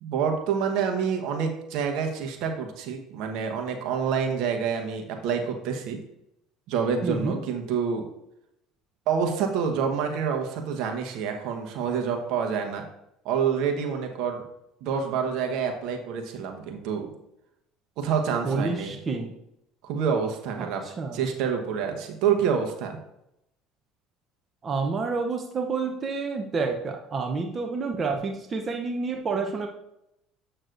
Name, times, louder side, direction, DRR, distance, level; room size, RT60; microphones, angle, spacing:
voice 1, 0.0-6.0 6.7-8.0 9.1-12.8 13.2-14.4 14.8-17.1 18.0-19.0 19.8-20.8 21.1-23.0, right 6 dB, 70° right, 4 dB, 1.1 m, -27 dB
voice 2, 7.0-7.4 18.4-19.3 21.0-21.2 24.6-29.7, right 4 dB, 35° right, 4 dB, 0.7 m, -29 dB
7.9 x 6.3 x 2.6 m, 0.82 s
supercardioid pair, 95°, 0 cm